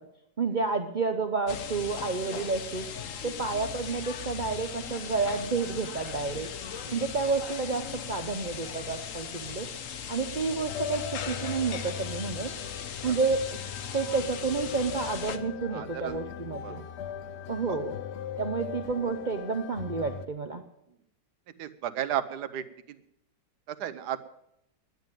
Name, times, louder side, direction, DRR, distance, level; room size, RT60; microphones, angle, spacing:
voice 1, 0.4-2.9 3.2-6.5 6.9-9.7 10.1-12.5 13.0-13.6 13.9-16.8 17.5-17.9 18.4-20.6, right 4 dB, 55° right, 6 dB, 0.5 m, -30 dB
sound 1, 1.5-15.4, left 8 dB, 55° left, 1.0 m, -38 dB
sound 2, 10.7-20.3, left 8 dB, 80° left, 0.6 m, -39 dB
voice 2, 15.7-16.2 16.6-16.8 17.7-17.8 21.6-23.0 23.7-24.2, right 10 dB, 70° right, 12 dB, 1.3 m, -34 dB
10.5 x 9.2 x 9.1 m, 0.80 s
omnidirectional pair, 1.9 m